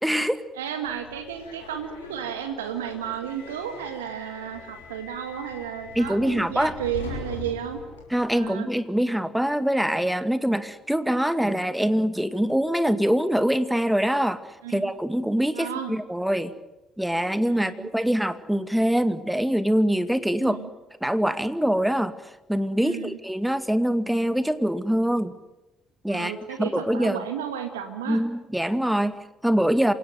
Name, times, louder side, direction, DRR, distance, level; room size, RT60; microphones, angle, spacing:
voice 1, 0.0-0.4 6.0-6.7 8.1-14.4 14.7-16.5 17.0-20.6 21.0-22.2 22.5-25.3 26.0-27.2 28.1-29.9, equal, 5° right, 11 dB, 2.2 m, -24 dB
voice 2, 0.5-7.8 8.4-8.7 14.6-14.9 15.5-16.0 17.4-17.9 20.4-20.7 22.8-23.2 26.1-28.2, right 9 dB, 80° right, 7 dB, 1.8 m, -33 dB
Subway metro underground, 0.9-8.5, left 3 dB, 85° left, 6.3 m, -42 dB
27.5 x 17.0 x 9.4 m, 1.0 s
hypercardioid pair, 50°, 0 cm